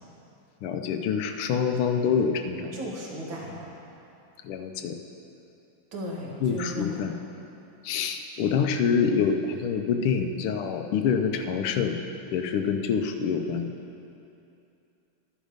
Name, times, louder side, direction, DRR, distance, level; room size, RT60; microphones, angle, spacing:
voice 1, 0.6-2.7 4.4-5.0 6.4-7.1 7.8-12.0 12.3-13.7, left 6 dB, 85° left, 6 dB, 1.6 m, -26 dB
voice 2, 2.7-3.6 5.9-7.0 7.3-7.4, left 1 dB, 65° right, -3 dB, 2.6 m, -36 dB
11.5 x 10.5 x 5.1 m, 2.7 s
omnidirectional pair, 2.3 m